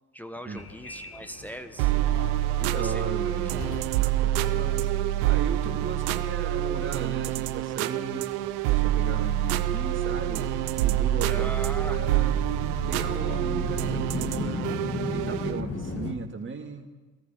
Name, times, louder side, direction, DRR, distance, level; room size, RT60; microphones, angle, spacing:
voice 1, 0.1-1.9 2.6-3.1 11.3-12.1 13.1-13.4, equal, 5° left, 6 dB, 1.1 m, -40 dB
Subway metro underground, 0.6-16.1, left 3 dB, 30° left, 1.9 m, -38 dB
sound 1, 1.8-15.6, right 13 dB, 85° right, 0.7 m, -26 dB
voice 2, 2.6-3.7 4.0-4.9 5.2-8.3 8.7-10.4 10.8-11.6 11.8-16.9, right 4 dB, 25° right, 3 dB, 2.2 m, -37 dB
17.5 x 14.0 x 5.2 m, 1.3 s
hypercardioid pair, 65°, 44 cm